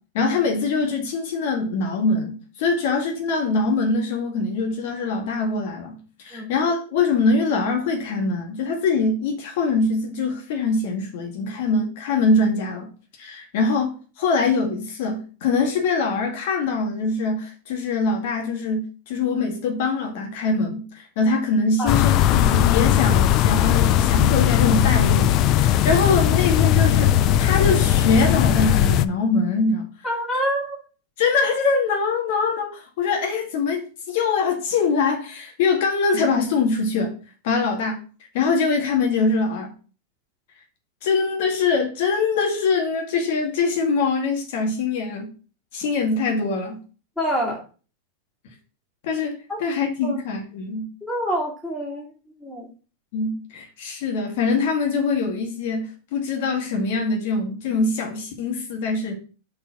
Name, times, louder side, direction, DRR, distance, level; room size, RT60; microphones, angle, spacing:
voice 1, 0.1-12.9 13.2-29.9 31.2-37.1 37.4-38.0 38.3-39.7 41.0-45.3 45.7-46.8 49.0-50.9 53.1-55.9 56.1-59.1, left 4 dB, 55° left, 1.9 m, -23 dB
sound 1, 21.9-29.0, left 11 dB, 35° left, 0.4 m, -18 dB
voice 2, 30.0-30.8 47.2-47.6 49.5-49.6 50.0-50.2 51.0-52.1 52.4-52.7, equal, 5° left, 2.5 m, -26 dB
5.3 x 4.4 x 6.0 m
supercardioid pair, 160°, 0 cm